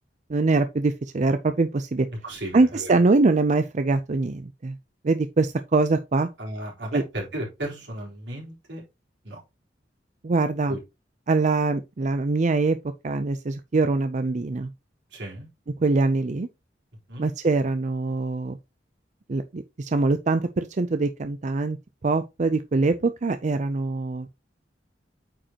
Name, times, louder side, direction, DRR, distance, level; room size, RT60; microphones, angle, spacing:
voice 1, 0.3-2.1 2.5-4.7 5.0-6.3 6.9-7.0 10.2-10.8 11.3-12.8 13.0-14.7 15.8-16.5 17.2-18.6 19.3-21.8 22.0-24.4, right 3 dB, 40° right, 0.5 m, -23 dB
voice 2, 2.1-3.0 6.4-8.8 9.2-9.4 10.7-10.8 15.1-15.5 17.1-17.2, right 1 dB, 80° right, 4.0 m, -34 dB
8.6 x 5.1 x 2.9 m
head